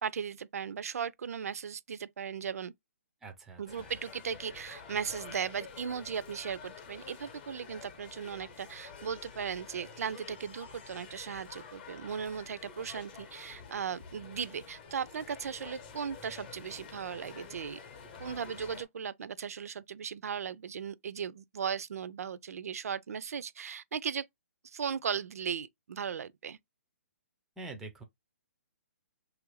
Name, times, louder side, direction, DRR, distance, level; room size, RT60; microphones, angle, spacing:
voice 1, 0.0-2.7 3.6-17.8 18.2-24.3 24.7-26.6, right 7 dB, 80° right, 0.4 m, -37 dB
voice 2, 3.2-3.9 27.6-28.0, right 3 dB, 5° right, 0.3 m, -45 dB
sound 1, 3.7-18.9, left 6 dB, 35° left, 0.7 m, -49 dB
3.0 x 2.4 x 3.0 m
hypercardioid pair, 160°, 8 cm